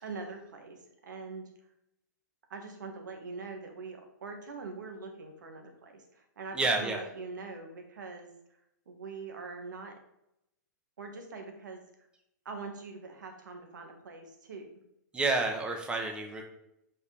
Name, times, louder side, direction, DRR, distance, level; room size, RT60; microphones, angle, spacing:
voice 1, 0.0-1.4 2.5-8.3 8.9-10.0 11.0-11.8 12.5-14.7, right 4 dB, 90° right, 4 dB, 1.7 m, -43 dB
voice 2, 6.5-7.0 15.1-16.4, right 3 dB, 10° right, 3 dB, 1.1 m, -29 dB
7.9 x 5.2 x 3.4 m, 0.82 s
hypercardioid pair, 145°, 10 cm